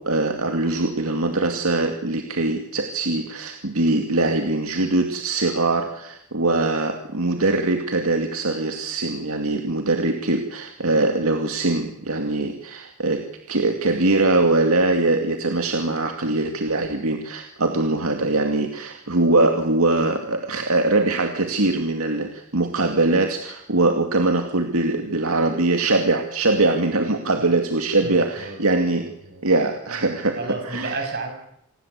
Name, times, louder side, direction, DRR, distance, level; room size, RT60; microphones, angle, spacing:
voice 1, 0.0-29.1 29.4-31.0, right 2 dB, 75° right, 5 dB, 2.3 m, -22 dB
voice 2, 28.0-28.6 29.0-29.4 30.4-31.3, right 3 dB, 45° right, 4 dB, 7.1 m, -32 dB
27.5 x 19.5 x 8.2 m, 0.77 s
head